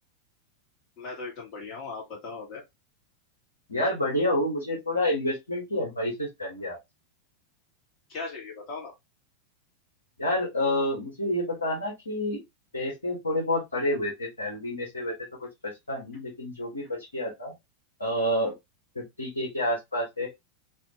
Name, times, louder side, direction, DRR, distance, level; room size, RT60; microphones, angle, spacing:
voice 1, 1.0-2.6 8.1-8.9, left 3 dB, 40° left, 1.9 m, -38 dB
voice 2, 3.7-6.8 10.2-12.4 12.7-15.1 15.4-17.5 18.0-18.5 18.9-20.3, left 1 dB, 75° left, 1.4 m, -29 dB
3.3 x 2.8 x 2.9 m
figure-of-eight pair, 90°, 0 cm